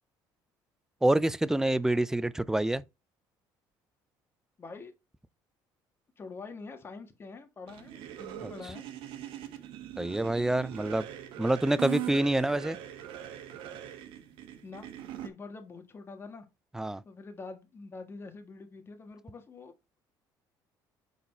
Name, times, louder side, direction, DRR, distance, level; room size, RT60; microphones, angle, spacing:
voice 1, 1.0-2.8 8.4-8.5 10.0-11.1 11.4-12.8 16.7-17.0, right 1 dB, 5° right, 0.4 m, -27 dB
voice 2, 4.6-4.9 6.2-8.8 14.6-14.9 15.2-16.4 17.0-19.7, left 4 dB, 30° left, 1.6 m, -45 dB
sound 1, 7.7-15.3, right 12 dB, 80° right, 1.4 m, -41 dB
7.8 x 4.1 x 4.3 m
cardioid pair, 125°, 8 cm